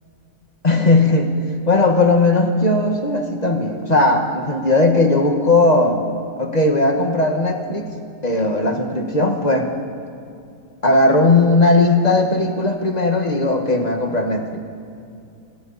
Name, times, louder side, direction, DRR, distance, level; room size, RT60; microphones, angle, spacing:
voice 1, 0.6-1.3 1.7-6.0 6.4-7.9 8.2-9.7 10.8-14.6, left 2 dB, 25° left, 3 dB, 1.7 m, -17 dB
26.0 x 24.5 x 4.3 m, 2.5 s
omnidirectional pair, 1.8 m